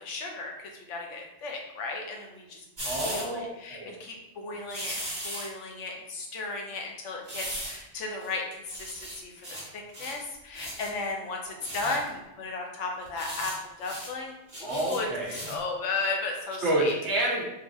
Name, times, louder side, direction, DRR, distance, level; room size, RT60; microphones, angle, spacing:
voice 1, 0.0-2.6 3.0-13.5 13.8-15.1 15.5-16.9, left 3 dB, 80° left, 1 dB, 1.0 m, -35 dB
sound 1, 2.8-3.2 4.7-5.5 7.3-7.8 8.2-8.3 8.7-9.7 9.9-10.2 10.5-10.9 11.6-12.1 13.0-13.6 13.8-14.1 14.5-15.6 16.1-16.2, right 1 dB, 35° right, 1.3 m, -37 dB
voice 2, 2.8-3.4 3.7-4.0 4.4-4.6 11.4-11.7 14.6-15.4 16.6-17.4, right 1 dB, 70° right, -3 dB, 1.1 m, -29 dB
3.8 x 2.4 x 2.6 m, 0.96 s
omnidirectional pair, 1.2 m